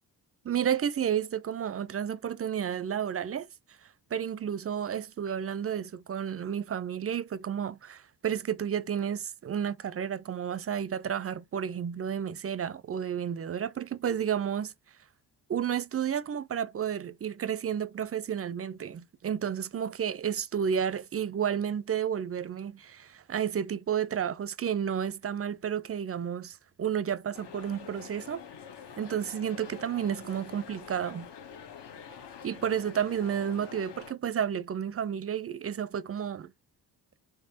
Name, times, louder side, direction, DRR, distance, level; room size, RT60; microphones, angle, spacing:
voice 1, 0.4-3.5 4.1-14.7 15.5-28.4 29.0-31.3 32.4-36.5, right 8 dB, 35° right, 0.4 m, -31 dB
sound 1, 27.3-34.1, left 7 dB, 70° left, 0.9 m, -47 dB
3.4 x 3.3 x 2.8 m
cardioid pair, 55°, 43 cm